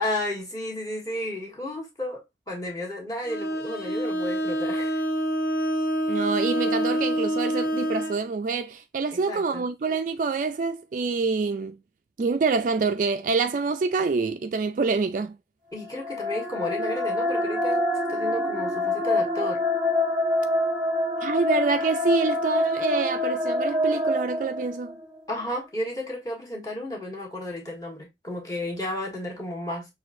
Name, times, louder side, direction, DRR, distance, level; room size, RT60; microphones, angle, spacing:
voice 1, 0.0-5.0 9.1-9.7 15.7-19.6 25.3-29.9, left 1 dB, 20° left, 1.2 m, -33 dB
Bowed string instrument, 3.2-8.2, right 1 dB, 55° left, 0.8 m, -27 dB
voice 2, 6.1-11.8 12.2-15.4 21.2-25.0, right 4 dB, 45° right, 0.3 m, -26 dB
sound 1, 15.8-25.1, left 1 dB, 5° right, 1.2 m, -26 dB
6.3 x 2.4 x 2.5 m
head